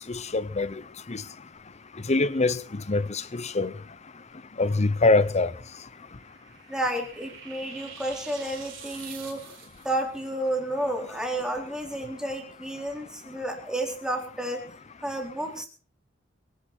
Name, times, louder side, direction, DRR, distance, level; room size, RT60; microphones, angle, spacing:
voice 1, 0.1-0.8 1.1-1.2 2.1-3.7 4.6-5.5, left 3 dB, 35° left, 0.8 m, -24 dB
sound 1, 5.9-10.0, right 8 dB, 75° right, 4.4 m, -46 dB
voice 2, 6.7-9.6 9.8-14.6 15.0-15.7, right 1 dB, 5° right, 3.9 m, -31 dB
24.0 x 11.5 x 4.5 m
head